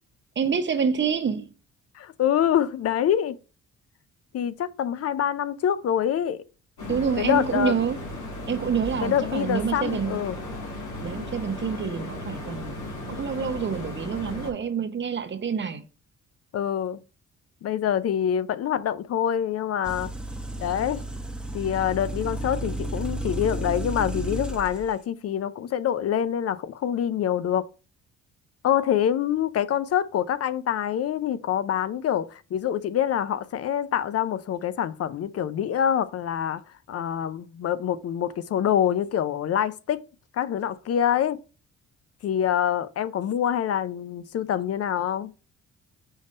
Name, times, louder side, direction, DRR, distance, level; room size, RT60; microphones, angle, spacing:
voice 1, 0.4-1.4 6.9-8.0 8.5-10.2 11.0-12.8 13.1-15.8, right 6 dB, 40° right, 0.9 m, -27 dB
voice 2, 1.9-3.4 4.3-6.4 7.2-7.8 9.0-10.4 16.5-17.0 17.6-20.1 20.6-21.0 21.5-27.7 28.6-36.6 36.9-40.0 40.3-41.4 42.2-45.3, left 9 dB, 55° left, 0.5 m, -25 dB
sound 1, 6.8-14.5, left 1 dB, 75° left, 2.8 m, -36 dB
sound 2, 19.8-24.9, right 1 dB, 5° right, 0.8 m, -32 dB
5.4 x 3.5 x 5.3 m
cardioid pair, 90°, 30 cm